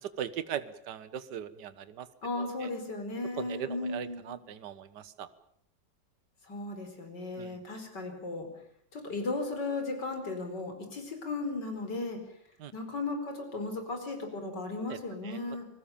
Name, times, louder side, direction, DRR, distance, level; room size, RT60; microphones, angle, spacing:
voice 1, 0.0-2.1 2.4-2.7 3.4-5.3 7.4-7.6 12.6-12.7 14.9-15.0 15.2-15.4, right 9 dB, 65° right, 14 dB, 1.8 m, -39 dB
voice 2, 2.2-4.4 6.5-8.5 8.9-12.2 12.7-15.6, left 3 dB, 60° left, 5 dB, 5.2 m, -36 dB
27.0 x 19.5 x 7.2 m, 0.67 s
omnidirectional pair, 2.1 m